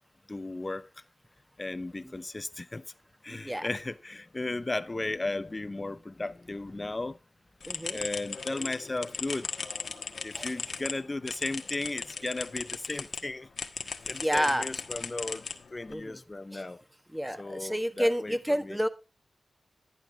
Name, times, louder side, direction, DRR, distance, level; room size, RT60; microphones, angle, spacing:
voice 1, 0.3-0.9 1.6-2.8 3.2-7.2 7.9-9.5 10.2-13.5 14.1-15.4 15.7-16.8 17.4-18.4 18.6-18.8, left 2 dB, 30° left, 0.8 m, -35 dB
voice 2, 3.3-3.7 7.6-8.0 10.3-10.5 14.2-14.7 15.9-16.2 16.5-16.7 17.1-18.9, equal, 5° right, 1.4 m, -30 dB
sound 1, 7.6-13.2 13.6-15.9, left 5 dB, 70° left, 1.3 m, -37 dB
11.5 x 10.5 x 3.5 m
cardioid pair, 65°, 0 cm